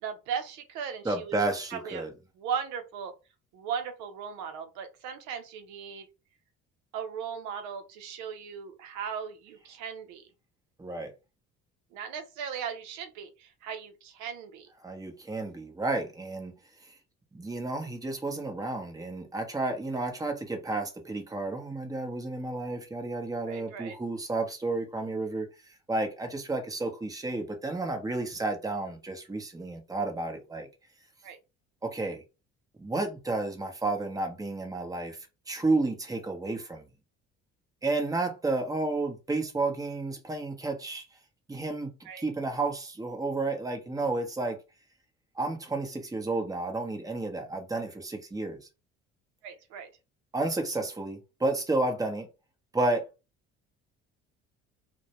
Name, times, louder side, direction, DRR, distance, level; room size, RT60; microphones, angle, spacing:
voice 1, 0.0-1.4 1.7-2.1 2.4-3.1 3.5-6.1 6.9-10.3 11.9-14.7 23.5-24.0 31.2-31.4 42.0-42.3 49.4-49.9, right 7 dB, 80° right, 0.6 m, -37 dB
voice 2, 1.0-2.1 10.8-11.1 14.8-16.5 17.3-25.5 25.9-30.7 31.8-32.2 32.8-35.2 35.5-36.9 37.8-41.0 41.5-44.6 45.4-48.6 50.3-52.3 52.7-53.0, right 2 dB, 10° right, 0.8 m, -31 dB
2.2 x 2.1 x 2.8 m
supercardioid pair, 80°, 29 cm